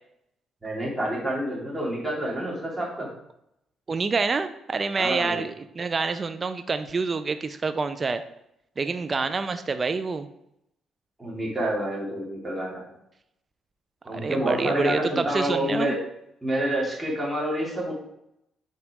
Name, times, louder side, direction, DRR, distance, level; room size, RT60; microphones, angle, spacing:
voice 1, 0.6-3.1 4.9-5.4 11.2-12.9 14.0-16.0 16.4-17.9, right 1 dB, 10° right, -5 dB, 2.4 m, -28 dB
voice 2, 3.9-8.2 8.8-10.3 14.1-15.9, right 4 dB, 35° right, 10 dB, 0.4 m, -27 dB
5.1 x 4.1 x 4.8 m, 0.80 s
cardioid pair, 90°, 0 cm